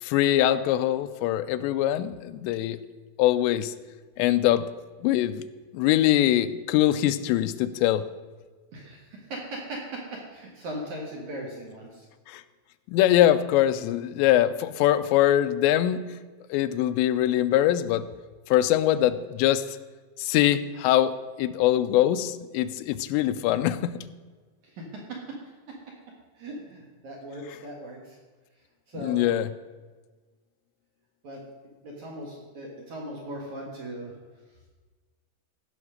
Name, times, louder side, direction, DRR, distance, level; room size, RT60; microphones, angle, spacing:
voice 1, 0.0-2.8 3.2-3.7 4.2-4.7 5.0-5.4 5.7-8.0 12.3-12.4 12.9-16.2 16.5-18.1 18.5-19.6 20.2-21.1 21.4-24.0 29.0-29.5, left 12 dB, 85° left, 12 dB, 2.7 m, -23 dB
voice 2, 8.7-12.1 24.6-25.4 25.7-25.8 26.4-28.2 28.9-29.2 31.2-31.4 31.8-34.1, right 1 dB, 55° right, -2 dB, 2.2 m, -38 dB
16.0 x 5.5 x 6.5 m, 1.4 s
omnidirectional pair, 5.2 m